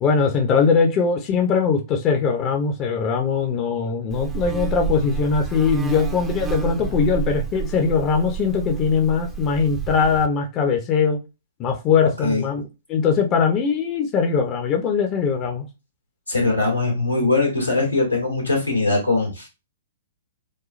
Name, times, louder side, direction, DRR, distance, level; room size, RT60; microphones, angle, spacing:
voice 1, 0.0-11.2 11.6-15.7, left 5 dB, 30° left, 3 dB, 0.9 m, -21 dB
Buzz, 4.1-10.3, right 7 dB, 10° right, 0.8 m, -30 dB
voice 2, 16.3-19.5, left 3 dB, 90° left, 1 dB, 2.4 m, -21 dB
6.5 x 2.3 x 3.2 m, 0.27 s
figure-of-eight pair, 115°, 0 cm